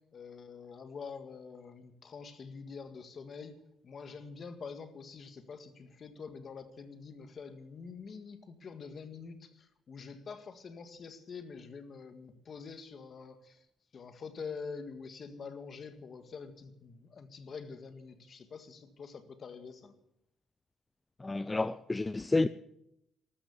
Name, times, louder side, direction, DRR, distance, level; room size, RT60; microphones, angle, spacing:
voice 1, 0.1-3.6 3.8-13.6 13.9-19.9, left 5 dB, 45° left, 1.8 m, -46 dB
voice 2, 21.2-22.5, left 2 dB, 15° left, 0.4 m, -30 dB
13.0 x 13.0 x 7.2 m
cardioid pair, 115°, 0 cm